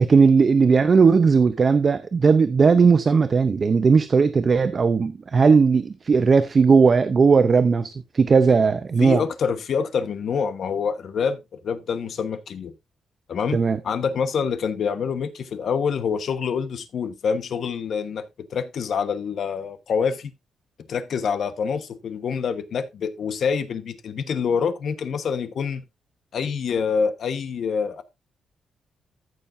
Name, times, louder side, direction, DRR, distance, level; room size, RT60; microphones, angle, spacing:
voice 1, 0.0-9.2 13.5-13.8, right 5 dB, 30° right, 0.6 m, -17 dB
voice 2, 9.0-12.7 13.3-18.3 18.5-20.3 20.9-25.8 26.3-28.0, left 6 dB, 55° left, 1.1 m, -26 dB
14.5 x 6.8 x 2.6 m
wide cardioid pair, 165°, 0 cm